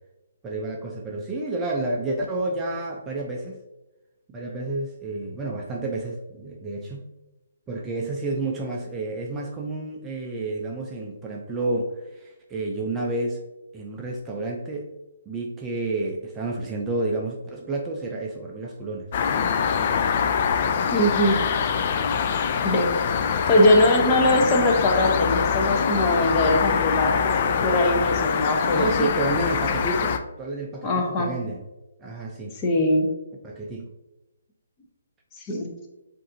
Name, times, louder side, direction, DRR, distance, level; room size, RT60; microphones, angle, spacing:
voice 1, 0.4-3.6 4.3-7.1 7.7-13.4 13.7-14.9 15.3-19.1 28.7-31.6 32.0-32.6 33.4-33.9, right 2 dB, 15° right, -2 dB, 0.5 m, -30 dB
sound 1, 19.1-30.2, left 6 dB, 40° left, 0.4 m, -24 dB
voice 2, 20.9-21.4 22.6-22.9 23.5-29.1 30.8-31.3 32.6-33.1 35.4-35.7, left 1 dB, 25° left, 2 dB, 0.8 m, -21 dB
7.4 x 2.6 x 2.7 m, 1.0 s
figure-of-eight pair, 140°, 0 cm